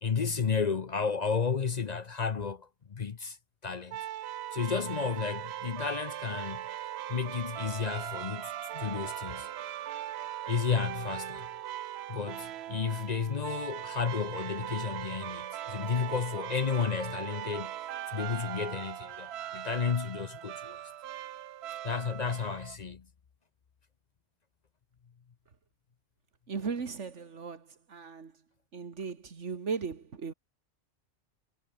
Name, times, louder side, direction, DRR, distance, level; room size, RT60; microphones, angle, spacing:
voice 1, 0.0-3.4 3.6-4.0 4.5-6.7 7.1-9.5 10.5-11.5 12.1-17.7 18.1-20.8 21.8-23.1, left 6 dB, 40° left, 0.8 m, -32 dB
sound 1, 3.9-22.8, right 12 dB, 70° right, 0.8 m, -40 dB
voice 2, 26.5-28.3 28.7-30.3, right 5 dB, 85° right, 2.1 m, -37 dB
omnidirectional pair, 1.2 m